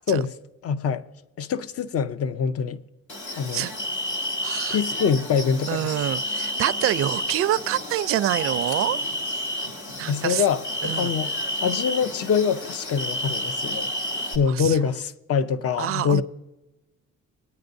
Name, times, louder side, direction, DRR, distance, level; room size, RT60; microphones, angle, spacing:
voice 1, 0.6-1.0 1.4-2.8 3.4-3.7 4.7-5.9 10.1-11.3 11.6-13.9 14.3-16.2, left 6 dB, 50° left, 0.6 m, -24 dB
sound 1, 3.1-14.4, left 1 dB, 80° left, 1.6 m, -30 dB
voice 2, 4.4-4.8 5.7-9.0 10.0-10.4 10.8-11.1 14.5-14.8 15.8-16.2, right 12 dB, 50° right, 0.4 m, -26 dB
19.0 x 9.3 x 2.7 m
cardioid pair, 90°, 30 cm